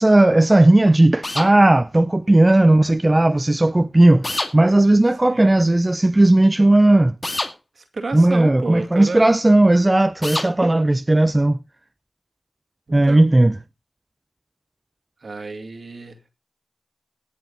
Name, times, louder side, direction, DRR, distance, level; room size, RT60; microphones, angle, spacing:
voice 1, 0.0-7.1 8.1-11.6 12.9-13.6, right 1 dB, 30° right, 0.6 m, -15 dB
sound 1, 1.2-1.5 4.2-4.5 7.2-7.5 10.2-10.5, left 1 dB, 35° left, 2.1 m, -25 dB
voice 2, 7.8-9.3 13.1-13.2 15.2-16.2, right 3 dB, 65° right, 2.2 m, -31 dB
18.0 x 6.7 x 3.9 m
cardioid pair, 40°, 0 cm